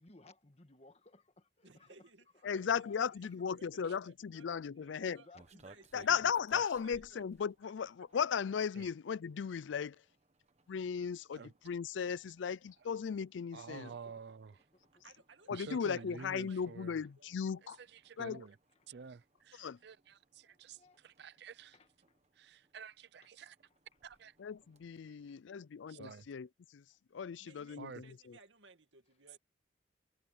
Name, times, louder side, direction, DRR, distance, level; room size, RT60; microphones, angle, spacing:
voice 1, 0.0-3.3 5.0-5.9 13.7-14.2 14.7-15.0 18.2-18.3 18.7-18.9 20.4-21.0 21.7-22.2 23.2-23.3 23.6-23.8 25.0-25.7 26.9-27.0, left 2 dB, 35° left, 1.7 m, -62 dB
voice 2, 1.6-6.1 6.8-7.2 14.9-16.7 17.2-17.3 27.4-29.4, right 3 dB, 90° right, 2.2 m, -61 dB
voice 3, 2.4-5.2 5.9-10.0 10.7-13.9 15.5-17.8 18.2-18.4 19.6-19.8 24.4-26.8 27.1-28.0, left 7 dB, 85° left, 0.4 m, -36 dB
sound 1, 5.3-25.1, right 2 dB, 40° right, 1.5 m, -65 dB
voice 4, 13.5-14.5 15.5-17.0 17.8-18.6 18.9-21.8 22.4-23.6 24.0-24.3 25.9-26.3 27.8-28.0, right 5 dB, 65° right, 0.5 m, -50 dB
head